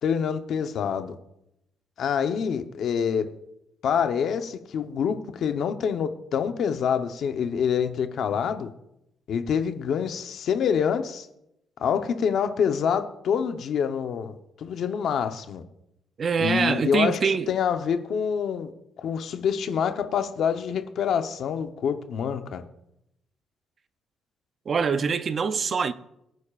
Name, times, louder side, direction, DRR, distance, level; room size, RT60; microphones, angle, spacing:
voice 1, 0.0-1.1 2.0-3.3 3.8-8.7 9.3-11.3 11.8-15.6 16.4-17.2 17.5-18.7 19.0-22.6, left 7 dB, 55° left, 0.9 m, -26 dB
voice 2, 16.2-17.5 24.7-25.9, right 6 dB, 35° right, 0.5 m, -24 dB
23.0 x 9.4 x 2.5 m
cardioid pair, 175°, 0 cm